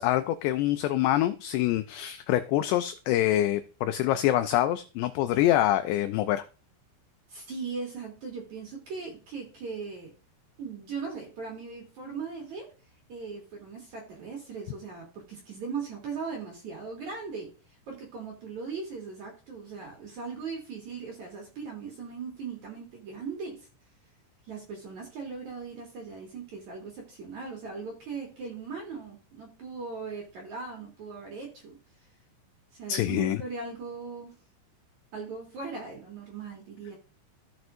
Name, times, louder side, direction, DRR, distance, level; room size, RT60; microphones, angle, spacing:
voice 1, 0.0-6.5 32.9-33.4, left 13 dB, 85° left, 9 dB, 2.4 m, -25 dB
voice 2, 7.3-10.1 10.6-12.7 13.1-17.5 17.9-23.7 24.5-31.8 32.7-34.4 35.1-37.0, right 5 dB, 50° right, 0 dB, 2.7 m, -39 dB
15.0 x 6.2 x 2.6 m, 0.34 s
omnidirectional pair, 5.4 m